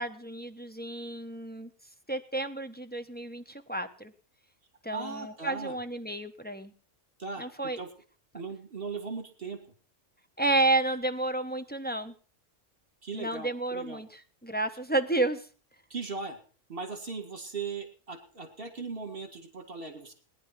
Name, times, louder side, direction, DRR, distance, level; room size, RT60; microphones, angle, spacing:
voice 1, 0.0-1.7 2.1-4.1 4.8-6.7 7.4-7.8 10.4-12.1 13.1-15.5, right 2 dB, 10° left, 6 dB, 0.9 m, -31 dB
voice 2, 4.9-5.8 7.2-7.5 7.8-7.9 8.3-9.6 13.0-14.0 15.9-16.4 16.7-20.1, right 4 dB, 50° right, 7 dB, 2.1 m, -38 dB
19.0 x 10.0 x 5.8 m, 0.41 s
omnidirectional pair, 1.3 m